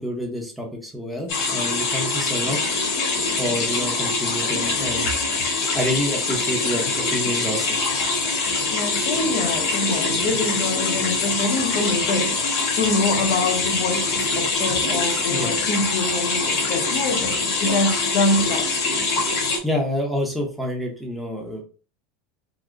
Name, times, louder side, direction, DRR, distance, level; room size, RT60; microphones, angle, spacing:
voice 1, 0.0-2.7 3.4-5.1 5.7-7.7 15.3-15.5 19.6-21.6, equal, ahead, 0.7 m, -28 dB
sound 1, 1.3-19.6, left 3 dB, 60° left, 1.3 m, -24 dB
voice 2, 8.7-18.7, left 2 dB, 45° left, 0.7 m, -25 dB
3.7 x 2.1 x 3.2 m
supercardioid pair, 175°, 2 cm